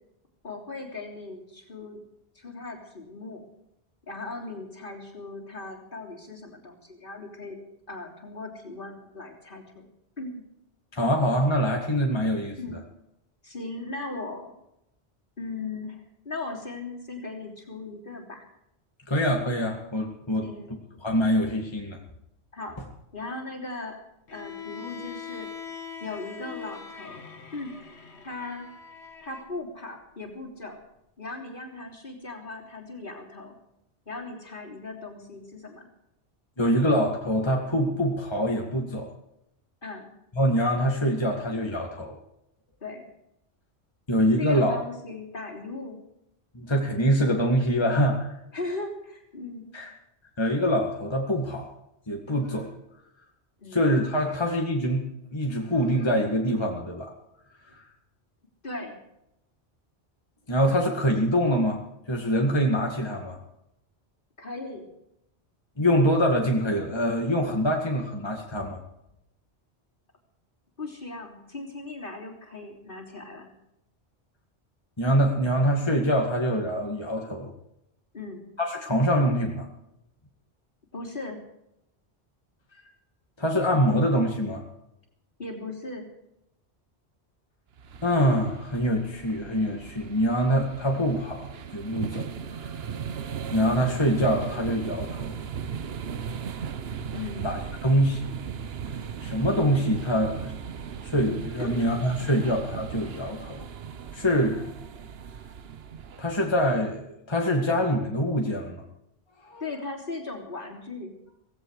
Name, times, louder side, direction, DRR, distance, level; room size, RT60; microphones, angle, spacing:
voice 1, 0.4-2.0 2.4-3.4 4.1-7.6 7.9-9.9 10.2-10.4 12.6-12.8 13.4-14.5 15.4-18.5 20.4-20.8 22.5-22.8 23.1-24.0 24.3-25.5 26.0-27.2 27.5-27.7 28.2-28.7 29.2-30.8 31.2-33.5 34.1-35.9 39.8-40.1 42.8-43.1 44.4-46.0 48.5-49.7 53.6-53.8 58.6-59.0 64.4-64.9 70.8-73.5 78.1-78.5 80.9-81.4 85.4-86.1 97.1-97.5 101.6-101.8 109.6-111.1, left 3 dB, 50° left, 0 dB, 3.6 m, -38 dB
voice 2, 10.9-12.6 19.1-20.5 21.0-22.0 36.6-39.1 40.3-42.2 44.1-44.8 46.5-48.3 49.7-49.9 50.4-51.7 52.1-52.7 53.7-55.0 55.3-57.1 57.7-57.8 60.5-61.8 62.1-63.4 65.8-68.8 75.0-77.5 78.6-79.7 83.4-84.6 88.0-92.3 92.6-92.7 93.5-95.4 97.4-98.3 98.9-100.5 101.0-103.7 104.1-104.6 106.2-108.8 109.4-109.6, equal, 25° left, 0 dB, 2.1 m, -24 dB
Bowed string instrument, 24.3-29.5, left 7 dB, 75° left, 1.9 m, -42 dB
sound 1, 87.8-106.8, right 7 dB, 65° right, 1.0 m, -37 dB
17.5 x 16.0 x 4.8 m, 0.81 s
omnidirectional pair, 1.1 m